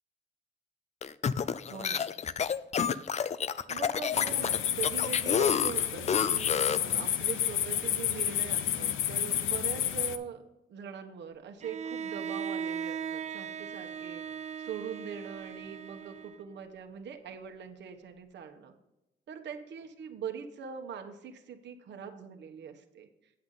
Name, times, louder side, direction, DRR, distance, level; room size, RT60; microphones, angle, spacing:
sound 1, 1.0-6.9, left 7 dB, 35° left, 0.4 m, -30 dB
voice 1, 1.7-2.1 3.7-10.4 10.7-14.2 14.6-18.7 19.3-23.3, right 7 dB, 65° right, 5 dB, 1.2 m, -42 dB
sound 2, 4.1-10.2, left 11 dB, 85° left, 0.6 m, -30 dB
Bowed string instrument, 11.6-16.6, right 7 dB, 35° right, 0.4 m, -38 dB
8.5 x 7.8 x 3.9 m, 0.92 s
cardioid pair, 90°, 20 cm